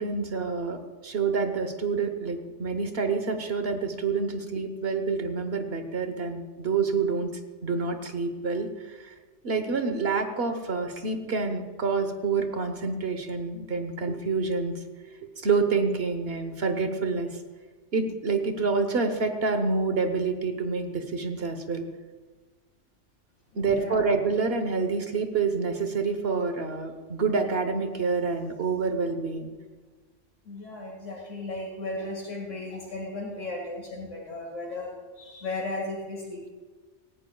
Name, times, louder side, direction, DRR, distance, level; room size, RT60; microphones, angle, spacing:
voice 1, 0.0-7.3 7.6-9.1 9.4-14.7 15.4-17.3 17.9-21.9 23.5-29.5, right 4 dB, 55° right, 7 dB, 1.3 m, -27 dB
voice 2, 23.5-24.0 30.5-34.9 35.2-36.5, left 2 dB, 85° left, -3 dB, 2.4 m, -35 dB
18.0 x 15.5 x 2.3 m, 1.4 s
omnidirectional pair, 1.2 m